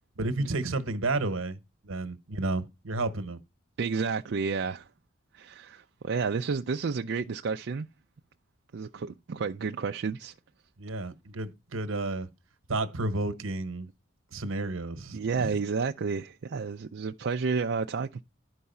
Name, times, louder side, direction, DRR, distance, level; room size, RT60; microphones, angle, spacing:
voice 1, 0.2-1.6 1.8-3.4 10.8-12.3 12.7-13.9 14.3-15.6, right 2 dB, 75° right, 1.1 m, -31 dB
voice 2, 3.8-4.9 5.3-7.9 8.7-10.3 15.1-18.2, right 5 dB, 55° right, 0.4 m, -31 dB
11.5 x 4.7 x 5.5 m
head